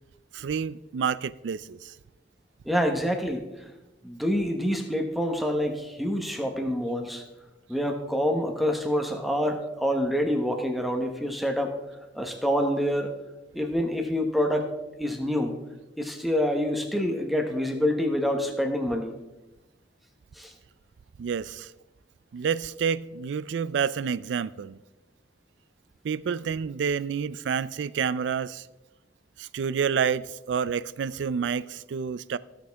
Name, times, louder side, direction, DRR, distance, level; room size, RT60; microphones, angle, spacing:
voice 1, 0.3-1.9 21.2-21.7 22.3-24.8 26.0-28.7 29.4-32.4, right 6 dB, 80° right, 0.3 m, -29 dB
voice 2, 2.6-3.5 4.0-7.2 7.7-11.8 12.1-13.1 13.5-14.7 15.0-15.5 16.0-19.1 20.3-20.5, equal, ahead, 1.0 m, -26 dB
15.5 x 6.5 x 3.5 m
head